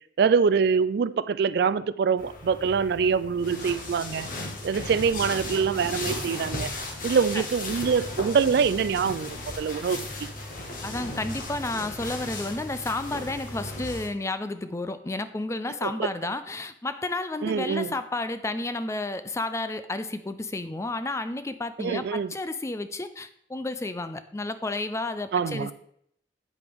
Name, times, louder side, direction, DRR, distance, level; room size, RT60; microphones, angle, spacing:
voice 1, 0.2-4.3 4.6-6.7 7.0-10.3 15.8-16.1 17.4-17.9 21.8-22.3 25.3-25.7, right 6 dB, 60° right, 15 dB, 0.3 m, -24 dB
sound 1, 2.2-14.1, left 2 dB, 50° left, 1.4 m, -36 dB
voice 2, 10.8-25.7, left 2 dB, 15° left, 11 dB, 0.4 m, -31 dB
8.6 x 8.0 x 3.5 m, 0.71 s
head